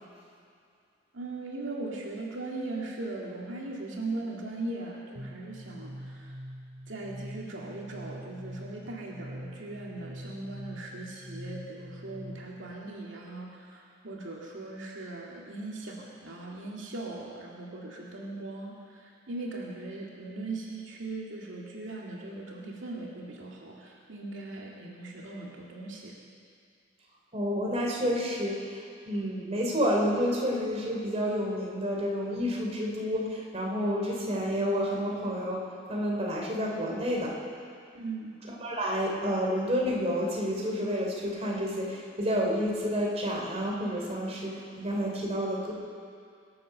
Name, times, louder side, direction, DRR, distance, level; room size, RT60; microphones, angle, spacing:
voice 1, 1.1-6.3 6.9-26.1 37.9-38.3, right 2 dB, 85° right, -3 dB, 2.2 m, -39 dB
sound 1, 5.2-12.7, equal, 50° right, 2.0 m, -44 dB
voice 2, 27.3-28.8 29.0-37.4 38.6-45.7, equal, 35° right, -2 dB, 3.2 m, -29 dB
25.5 x 8.6 x 6.6 m, 2.4 s
head